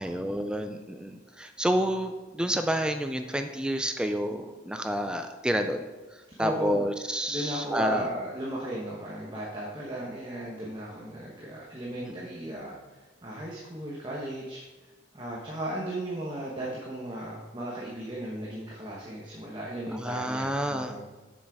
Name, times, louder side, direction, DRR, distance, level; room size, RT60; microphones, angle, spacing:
voice 1, 0.0-5.9 6.4-8.0 12.0-12.2 19.9-21.0, equal, 5° right, 7 dB, 0.3 m, -29 dB
voice 2, 6.4-6.8 7.3-12.7 13.2-14.6 15.1-21.0, right 1 dB, 20° right, -4 dB, 1.1 m, -36 dB
7.3 x 7.3 x 4.8 m, 1.2 s
head